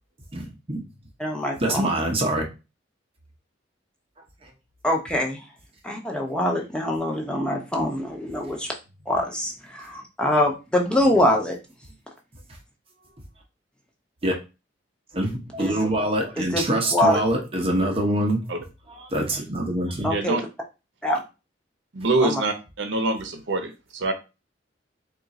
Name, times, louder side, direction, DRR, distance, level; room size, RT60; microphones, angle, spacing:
voice 1, 0.3-0.8 1.6-2.4 4.4-4.5 14.2-14.3 15.1-18.4 18.9-20.1, right 1 dB, 30° right, 1 dB, 0.8 m, -25 dB
voice 2, 1.2-1.9 4.8-5.4 5.8-8.7 9.1-11.6 15.6-15.7 16.4-17.2 20.0-20.4 21.0-21.2 22.2-22.4, left 1 dB, 5° left, 0 dB, 0.8 m, -24 dB
voice 3, 20.1-20.4 21.9-24.1, right 2 dB, 75° right, 6 dB, 0.8 m, -25 dB
3.7 x 2.4 x 4.0 m, 0.28 s
head